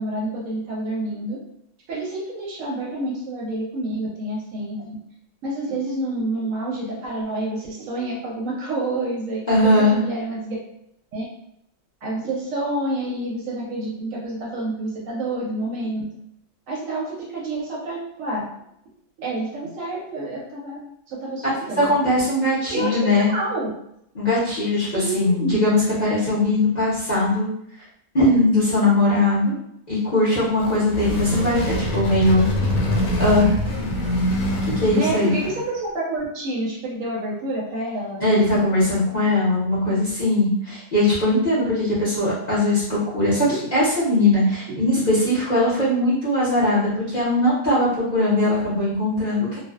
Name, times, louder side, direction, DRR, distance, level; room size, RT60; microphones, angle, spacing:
voice 1, 0.0-1.4 1.9-4.9 5.4-10.6 11.1-11.2 12.0-16.1 16.7-18.4 19.2-20.8 21.1-22.0 22.7-23.7 24.9-25.7 34.9-38.2 44.7-45.0, right 2 dB, 70° right, -3 dB, 0.8 m, -28 dB
voice 2, 9.5-10.0 21.8-23.3 24.1-27.5 28.1-29.5 29.9-32.4 33.2-33.5 34.7-35.4 38.2-43.5 43.7-49.6, left 1 dB, 40° left, -10 dB, 0.6 m, -20 dB
sound 1, 30.4-35.8, left 1 dB, 75° left, 1.1 m, -24 dB
2.5 x 2.1 x 2.3 m, 0.74 s
omnidirectional pair, 1.6 m